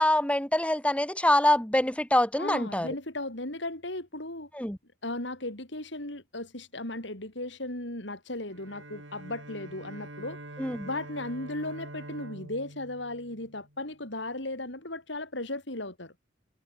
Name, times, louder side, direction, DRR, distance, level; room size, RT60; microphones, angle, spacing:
voice 1, 0.0-2.9 4.5-4.8 10.6-10.9, left 1 dB, 5° left, 3.1 m, -25 dB
voice 2, 2.4-4.5 5.0-10.4 10.8-16.1, left 2 dB, 65° left, 6.2 m, -36 dB
Bowed string instrument, 8.5-14.0, right 1 dB, 85° right, 7.7 m, -45 dB
head